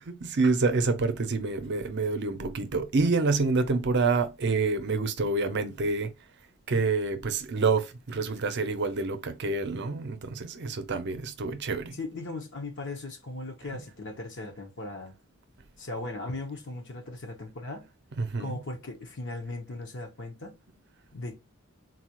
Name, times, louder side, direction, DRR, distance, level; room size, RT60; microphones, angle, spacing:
voice 1, 0.2-6.1 6.7-12.0 18.2-18.6, right 3 dB, 55° right, 0.6 m, -27 dB
voice 2, 12.0-15.1 15.8-17.9 18.4-20.6 21.1-21.4, left 2 dB, 55° left, 0.9 m, -38 dB
4.0 x 2.4 x 2.9 m
head